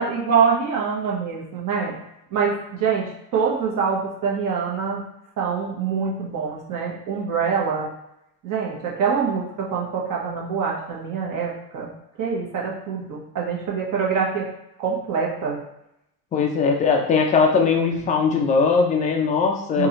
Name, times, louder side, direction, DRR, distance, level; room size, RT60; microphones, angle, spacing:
voice 1, 0.0-1.9 2.3-5.0 5.4-7.9 8.4-11.9 12.2-14.5 14.8-15.6 19.7-19.9, right 6 dB, 40° right, -3 dB, 1.3 m, -25 dB
voice 2, 16.3-19.9, left 5 dB, 15° left, 2 dB, 0.3 m, -20 dB
3.8 x 2.7 x 2.9 m, 0.83 s
hypercardioid pair, 80°, 50 cm